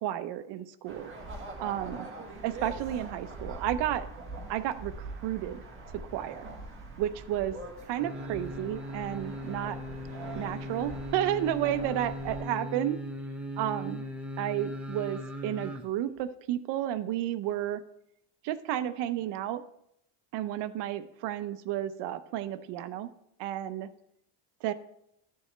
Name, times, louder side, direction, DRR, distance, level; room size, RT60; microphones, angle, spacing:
voice 1, 0.0-1.1 1.6-2.1 2.4-4.1 4.5-5.6 6.1-6.5 7.0-7.5 7.9-9.8 10.4-13.0 13.6-14.0 14.4-17.8 18.4-19.6 20.3-23.1 23.4-23.9 24.6-24.7, right 12 dB, 55° right, 12 dB, 0.7 m, -32 dB
sound 1, 0.9-12.4, right 2 dB, 25° right, 1.6 m, -43 dB
sound 2, 8.0-15.8 16.2-16.3, equal, 5° right, 0.7 m, -39 dB
12.0 x 6.9 x 3.2 m, 0.75 s
cardioid pair, 145°, 48 cm